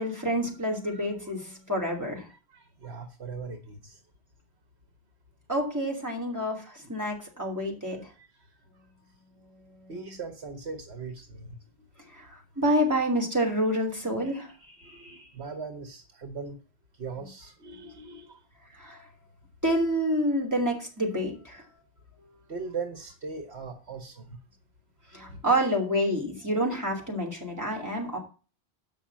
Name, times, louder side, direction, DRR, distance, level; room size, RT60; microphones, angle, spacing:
voice 1, 0.0-2.3 5.5-8.1 9.7-10.1 12.1-14.5 17.1-17.3 18.7-19.1 19.6-21.6 25.1-28.2, equal, 15° right, -1 dB, 3.3 m, -28 dB
voice 2, 2.5-4.0 8.2-8.4 9.9-11.6 14.2-16.6 16.9-18.4 22.5-24.4 25.1-25.8, right 4 dB, 75° right, 7 dB, 1.5 m, -40 dB
8.0 x 6.1 x 7.4 m, 0.36 s
omnidirectional pair, 1.1 m